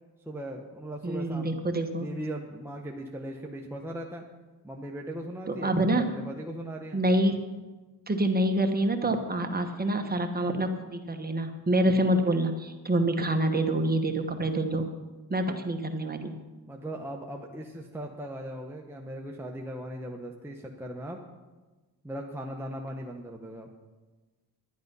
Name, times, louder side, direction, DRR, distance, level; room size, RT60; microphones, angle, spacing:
voice 1, 0.3-1.6 2.0-4.2 4.6-7.0 16.7-21.2 22.0-23.7, right 1 dB, 5° right, 0 dB, 0.9 m, -38 dB
voice 2, 1.0-2.1 5.5-6.1 6.9-7.4 8.1-14.9 15.3-16.3, right 1 dB, 25° right, 5 dB, 1.2 m, -26 dB
10.5 x 10.5 x 5.4 m, 1.2 s
cardioid pair, 105°, 40 cm